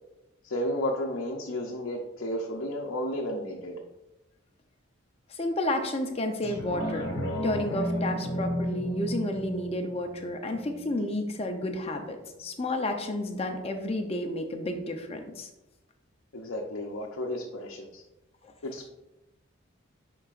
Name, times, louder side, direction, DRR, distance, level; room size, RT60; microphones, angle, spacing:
voice 1, 0.4-3.8 16.3-18.0 18.6-18.9, left 1 dB, 70° left, -1 dB, 0.7 m, -32 dB
voice 2, 5.3-7.1 7.4-15.5 18.4-18.5, left 1 dB, 30° left, 4 dB, 0.6 m, -31 dB
sound 1, 6.4-11.4 11.9-12.0, equal, 50° left, 1.4 m, -33 dB
10.5 x 3.9 x 2.5 m, 0.96 s
head